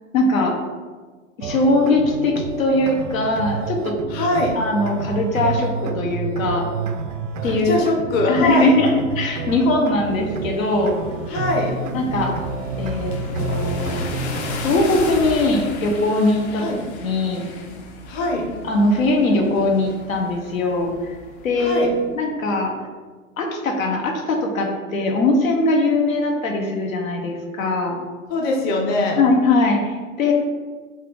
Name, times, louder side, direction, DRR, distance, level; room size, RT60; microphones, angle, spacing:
voice 1, 0.1-0.6 1.4-4.0 4.5-6.7 7.4-7.8 8.3-11.0 11.9-12.5 12.8-14.0 14.6-16.8 17.0-17.4 18.6-20.9 21.4-22.8 23.4-28.0 29.2-30.3, left 2 dB, 85° left, 2 dB, 0.9 m, -20 dB
sound 1, 1.4-14.6, right 5 dB, 70° right, 0.5 m, -29 dB
voice 2, 4.1-4.5 7.4-8.7 11.3-11.7 16.6-16.8 18.1-18.5 21.6-21.9 28.3-29.2, left 2 dB, 25° left, 0 dB, 0.6 m, -22 dB
sound 2, 9.8-22.0, left 2 dB, 55° left, 0.8 m, -34 dB
4.3 x 2.4 x 3.7 m, 1.4 s
hypercardioid pair, 115°, 40 cm